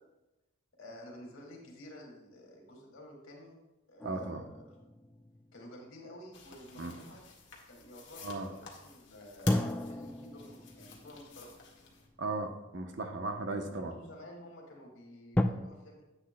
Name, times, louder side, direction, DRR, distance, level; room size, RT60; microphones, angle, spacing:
voice 1, 0.8-3.6 3.9-4.8 5.5-7.2 7.7-11.5 13.5-16.0, equal, 80° left, 0 dB, 2.1 m, -51 dB
sound 1, 4.0-6.6 9.4-12.8 13.5-13.6 15.3-15.4, left 1 dB, 10° left, 0.3 m, -36 dB
voice 2, 4.0-4.5 6.8-6.9 8.2-8.5 12.2-13.9, right 2 dB, 60° right, 5 dB, 0.8 m, -36 dB
sound 2, 6.3-12.1, left 5 dB, 60° left, 1.4 m, -51 dB
10.0 x 8.1 x 2.2 m, 1.0 s
head